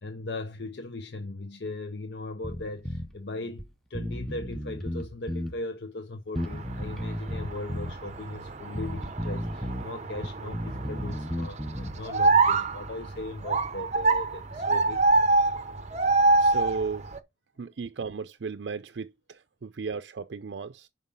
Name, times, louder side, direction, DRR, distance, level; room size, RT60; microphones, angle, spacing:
voice 1, 0.0-15.0, left 2 dB, 70° left, 0.8 m, -38 dB
Bass guitar, 2.4-3.1 3.6-3.7 3.9-5.6 6.4-8.0 8.7-9.9 10.2-12.0, equal, ahead, 0.7 m, -34 dB
sound 1, 6.4-17.2, right 3 dB, 40° right, 0.7 m, -26 dB
voice 2, 16.4-17.1 17.6-20.9, right 5 dB, 75° right, 0.5 m, -35 dB
5.5 x 5.4 x 6.7 m
head